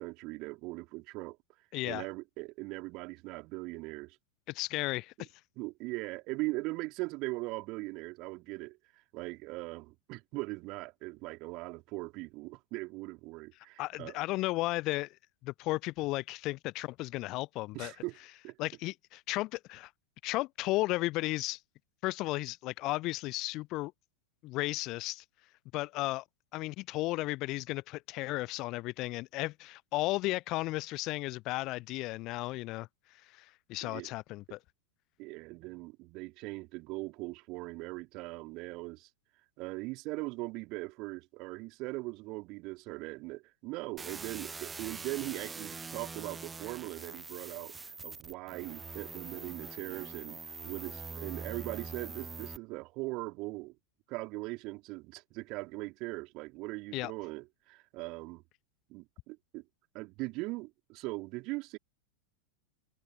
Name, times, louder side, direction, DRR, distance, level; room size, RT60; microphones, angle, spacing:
voice 1, 0.0-1.4 1.8-4.2 5.6-14.2 17.7-18.2 18.4-18.6 33.8-34.1 35.2-39.1 39.6-50.4 50.6-53.8 54.1-58.4 58.9-59.6 59.9-61.8, right 23 dB, 40° right, 4.2 m, -40 dB
voice 2, 1.7-2.1 4.5-5.3 13.8-15.2 15.4-17.9 18.6-19.9 20.2-21.6 22.0-23.9 24.4-25.2 25.7-26.2 26.5-34.6 56.9-57.1, left 20 dB, 40° left, 0.4 m, -34 dB
sound 1, 44.0-52.6, right 4 dB, 15° right, 0.9 m, -44 dB
figure-of-eight pair, 90°, 0 cm